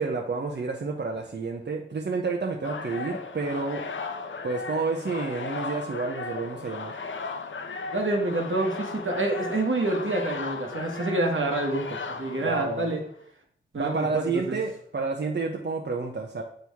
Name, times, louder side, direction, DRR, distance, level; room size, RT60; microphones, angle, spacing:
voice 1, 0.0-3.9 4.4-6.9 12.4-12.9 13.8-16.4, right 4 dB, 60° right, 1 dB, 0.7 m, -30 dB
sound 1, 2.6-13.1, left 4 dB, 75° left, 0.6 m, -36 dB
voice 2, 7.9-13.0 13.7-14.6, right 2 dB, 80° right, 2 dB, 1.2 m, -27 dB
7.6 x 4.6 x 3.5 m, 0.62 s
wide cardioid pair, 50°, 20 cm